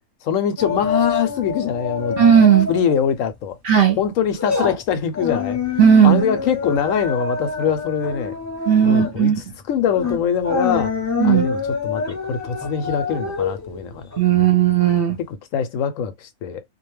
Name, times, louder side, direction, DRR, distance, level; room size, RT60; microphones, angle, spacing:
voice 1, 0.2-2.2 2.7-3.6 4.0-5.6 6.0-8.4 8.8-9.3 9.7-10.9 11.2-14.5 15.3-16.6, left 8 dB, 70° left, 0.9 m, -23 dB
sound 1, 0.6-3.0 3.3-3.5 3.9-14.9 15.2-15.3, left 5 dB, 15° left, 0.6 m, -26 dB
voice 2, 2.2-2.7 3.6-4.0 5.8-6.2 8.7-9.4 11.2-11.5 14.2-15.2, right 8 dB, 55° right, 0.7 m, -14 dB
2.5 x 2.2 x 3.1 m
omnidirectional pair, 1.5 m